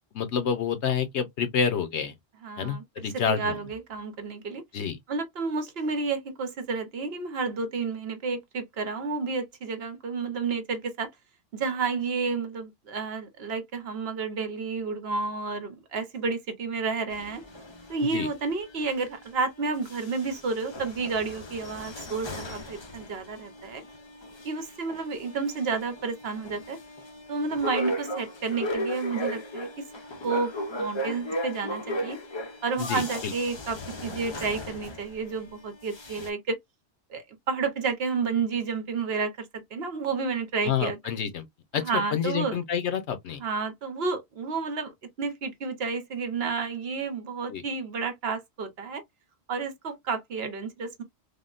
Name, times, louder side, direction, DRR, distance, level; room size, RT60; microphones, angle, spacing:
voice 1, 0.1-2.1 2.6-3.6 4.7-5.0 18.1-18.3 32.8-33.3 40.6-41.4 41.7-41.8 42.1-43.4 47.5-47.6, left 7 dB, 75° left, 1.0 m, -28 dB
voice 2, 2.4-4.6 5.1-11.1 11.5-17.4 17.9-23.8 24.4-26.8 27.3-29.9 30.2-30.5 30.8-32.2 32.6-36.6 37.1-41.0 41.7-42.6 43.4-44.9 45.2-49.0 49.5-51.0, right 4 dB, 65° right, 1.0 m, -31 dB
sound 1, 17.1-19.5 19.8-35.5 35.8-36.3, equal, 35° left, 0.4 m, -37 dB
3.5 x 2.1 x 2.4 m
omnidirectional pair, 1.2 m